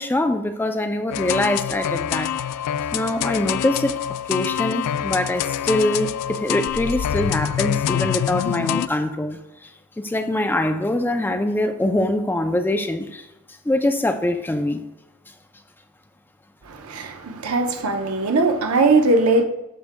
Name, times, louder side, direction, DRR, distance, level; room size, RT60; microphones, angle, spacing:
voice 1, 0.0-2.3 2.9-4.0 4.3-9.7 10.0-13.3 13.7-14.8, left 1 dB, 10° left, 0.3 m, -23 dB
sound 1, 1.1-8.9, left 10 dB, 90° left, 0.3 m, -25 dB
voice 2, 16.6-19.4, right 3 dB, 75° right, 0.7 m, -20 dB
13.0 x 4.7 x 2.2 m
head